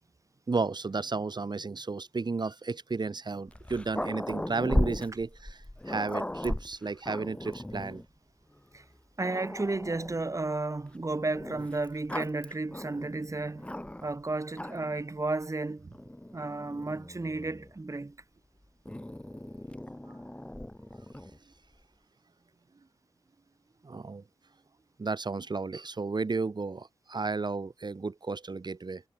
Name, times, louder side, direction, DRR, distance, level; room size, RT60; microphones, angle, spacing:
voice 1, 0.5-8.0 23.8-24.2 25.0-29.0, right 4 dB, 50° right, 4.1 m, -33 dB
Growling, 3.5-8.1 8.7-8.8 9.2-10.3 11.4-14.2 14.5-15.0 15.9-17.7 18.9-21.4, left 1 dB, 15° left, 4.7 m, -37 dB
voice 2, 9.2-13.7 14.0-15.9 16.3-18.2, right 2 dB, 35° right, 4.2 m, -33 dB
cardioid pair, 55°, 9 cm